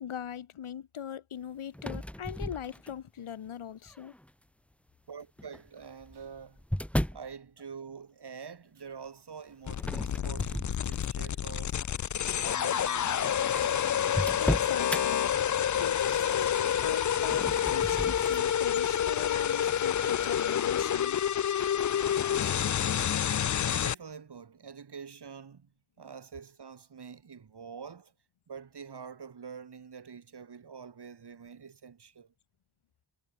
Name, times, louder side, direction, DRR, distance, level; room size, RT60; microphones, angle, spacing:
voice 1, 0.0-4.1 14.4-15.3 15.8-21.2, left 9 dB, 90° left, 5.5 m, -41 dB
sound 1, 1.7-3.2 3.9-4.3 5.4-7.3 9.8-11.3 11.8-12.1 12.8-12.9 13.1-13.2 13.5-15.0 17.2-18.5, equal, 5° left, 2.0 m, -35 dB
voice 2, 5.1-6.6 7.1-11.8 12.4-13.8 23.6-25.7 26.0-28.1 28.5-32.3, right 6 dB, 55° right, 4.8 m, -46 dB
sound 2, 9.7-23.9, left 9 dB, 40° left, 0.5 m, -28 dB
cardioid pair, 90°, 48 cm